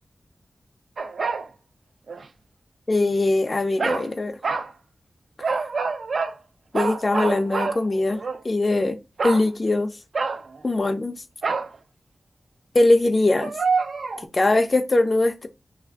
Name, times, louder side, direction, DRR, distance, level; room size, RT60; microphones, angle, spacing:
sound 1, 1.0-1.5 2.1-2.2 3.8-4.1 4.4-4.7 5.4-6.4 6.7-8.4 9.2-9.5 10.1-10.6 11.4-11.8 13.4-14.3, right 4 dB, 75° right, 0.3 m, -26 dB
voice 1, 2.9-4.4 6.7-9.0 9.2-9.9 10.6-11.2 12.7-13.5 14.3-15.5, left 2 dB, 35° left, 0.3 m, -21 dB
3.1 x 2.4 x 3.4 m
wide cardioid pair, 95°, 0 cm